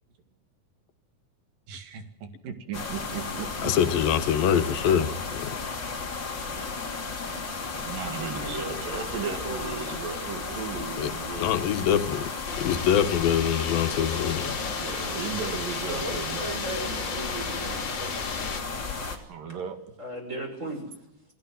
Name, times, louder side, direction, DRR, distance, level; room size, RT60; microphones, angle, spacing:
voice 1, 1.7-4.0 7.3-7.5 7.8-11.7 14.4-16.6 19.3-19.8, right 6 dB, 75° right, 3.8 m, -36 dB
sound 1, 2.7-19.2, left 4 dB, 35° left, 3.5 m, -34 dB
voice 2, 3.6-5.6 11.0-11.1 11.4-12.3 12.6-14.6, left 9 dB, 85° left, 2.9 m, -24 dB
voice 3, 7.7-9.8 15.9-18.2 19.5-19.6 20.0-21.1, right 2 dB, 20° right, 6.0 m, -37 dB
sound 2, 12.5-18.6, left 5 dB, 55° left, 4.0 m, -35 dB
28.0 x 16.5 x 7.8 m
omnidirectional pair, 4.0 m